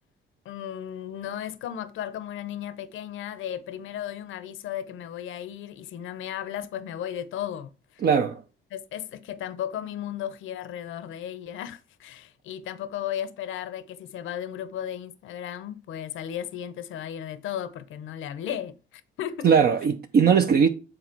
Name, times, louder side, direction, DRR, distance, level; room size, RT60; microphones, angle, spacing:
voice 1, 0.4-8.0 8.7-19.5, left 10 dB, 80° left, 0.8 m, -35 dB
voice 2, 8.0-8.4 19.4-20.7, right 6 dB, 50° right, 0.7 m, -19 dB
7.9 x 4.0 x 4.5 m
cardioid pair, 90°, 20 cm